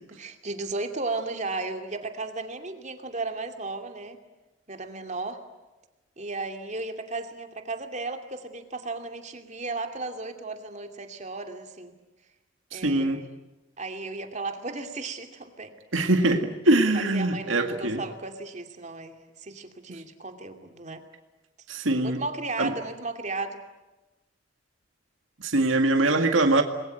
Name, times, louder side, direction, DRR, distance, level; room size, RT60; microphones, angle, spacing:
voice 1, 0.1-4.2 4.7-5.4 6.2-11.9 12.7-13.3 13.8-15.7 16.9-21.0 22.0-23.6, right 3 dB, 35° right, 6 dB, 2.6 m, -35 dB
voice 2, 12.7-13.2 15.9-18.0 19.9-20.0 21.7-22.2 22.6-22.7 25.4-26.6, right 2 dB, 85° right, 6 dB, 2.1 m, -23 dB
28.5 x 21.5 x 9.1 m, 1.1 s
head